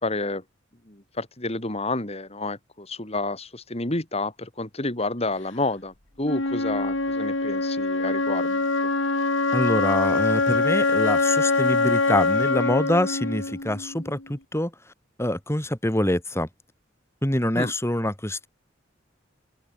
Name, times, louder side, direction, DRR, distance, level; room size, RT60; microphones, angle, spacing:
voice 1, 0.0-0.4 0.9-8.6 17.6-17.7, left 2 dB, 35° left, 3.7 m, -29 dB
Wind instrument woodwind instrument, 6.2-14.2, left 3 dB, 80° left, 2.6 m, -24 dB
voice 2, 9.5-14.7 15.2-16.5 17.2-18.5, left 1 dB, 15° left, 4.2 m, -25 dB
open air
head